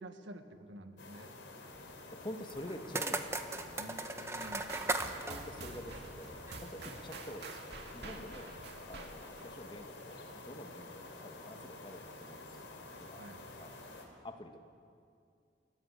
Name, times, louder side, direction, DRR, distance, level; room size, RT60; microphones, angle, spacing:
voice 1, 0.0-1.3 3.8-4.7 13.1-13.5, right 1 dB, 80° right, 7 dB, 1.8 m, -50 dB
sound 1, 1.0-14.0, left 2 dB, 85° left, 3.9 m, -50 dB
voice 2, 1.8-4.2 5.0-8.5 8.9-12.7 13.0-13.2 13.6-14.6, equal, 25° left, 6 dB, 1.5 m, -48 dB
sound 2, 2.5-6.7, right 2 dB, 15° right, 1.1 m, -38 dB
sound 3, 4.4-9.5, right 3 dB, 65° right, 2.1 m, -48 dB
29.5 x 14.5 x 8.5 m, 2.4 s
head